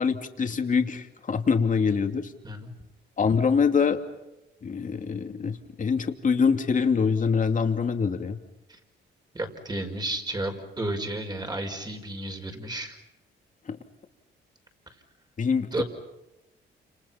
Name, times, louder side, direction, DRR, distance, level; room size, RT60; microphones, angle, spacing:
voice 1, 0.0-2.3 3.2-4.0 4.6-8.4 15.4-15.8, left 5 dB, 40° left, 5 dB, 2.7 m, -24 dB
voice 2, 9.3-13.0 15.7-15.8, right 1 dB, 20° right, 5 dB, 5.5 m, -32 dB
29.5 x 28.0 x 5.9 m, 0.95 s
cardioid pair, 90°, 20 cm